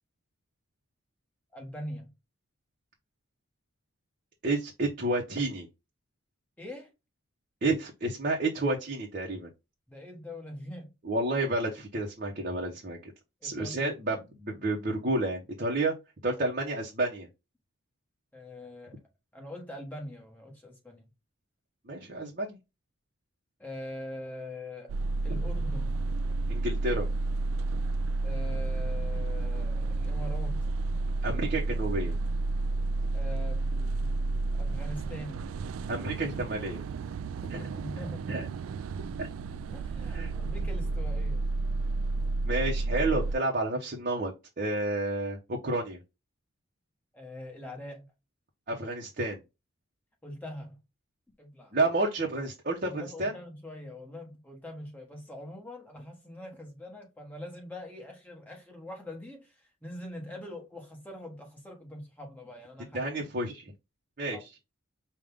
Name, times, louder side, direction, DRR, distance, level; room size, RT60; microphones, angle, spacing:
voice 1, 1.5-2.1 6.6-6.9 9.9-10.9 13.4-14.0 16.3-16.5 18.3-19.0 19.3-21.1 23.6-24.9 25.2-26.0 28.2-30.7 33.1-35.4 37.5-38.5 39.7-41.5 47.1-48.1 50.2-50.8 51.4-51.7 52.8-63.0 64.3-64.4, left 1 dB, 10° left, 1.3 m, -43 dB
voice 2, 4.4-5.7 7.6-9.5 11.0-13.1 13.4-15.9 16.2-17.3 21.9-22.6 25.3-25.4 26.5-27.1 31.2-32.1 35.9-36.8 37.5-37.8 38.3-38.5 39.2-39.3 40.1-40.3 42.5-46.0 48.7-49.4 51.7-53.3 62.9-63.6 64.2-64.4, right 2 dB, 40° right, 0.9 m, -30 dB
sound 1, 24.9-43.3, right 3 dB, 80° right, 0.3 m, -31 dB
5.1 x 2.4 x 3.5 m
head